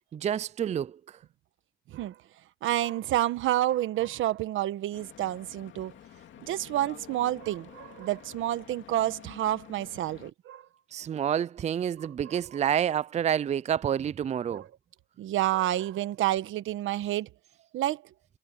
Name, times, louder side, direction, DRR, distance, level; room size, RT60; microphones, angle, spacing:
voice 1, 0.1-1.2 10.9-14.7, right 9 dB, 35° right, 0.4 m, -28 dB
voice 2, 2.6-5.9 6.4-10.7 12.2-12.7 14.5-14.7 15.2-17.3 17.7-18.1, right 14 dB, 80° right, 1.2 m, -29 dB
Stream / Boat Water vehicle, 4.9-10.3, left 10 dB, 70° left, 2.5 m, -50 dB
cardioid pair, 90°, 20 cm